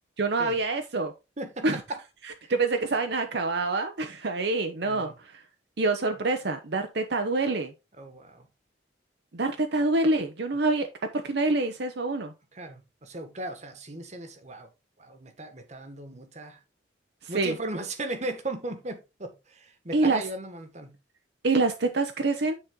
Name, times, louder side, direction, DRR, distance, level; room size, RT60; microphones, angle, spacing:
voice 1, 0.2-1.1 1.6-1.8 2.5-5.4 5.8-7.7 9.3-10.9 11.1-12.3 17.2-17.5 19.9-20.2 21.4-22.5, right 3 dB, 60° right, 0.8 m, -26 dB
voice 2, 1.4-2.0 2.4-2.5 4.8-5.1 8.0-8.5 12.5-14.7 15.0-16.6 17.3-20.9, right 2 dB, 40° right, 1.4 m, -37 dB
9.5 x 4.3 x 3.7 m
head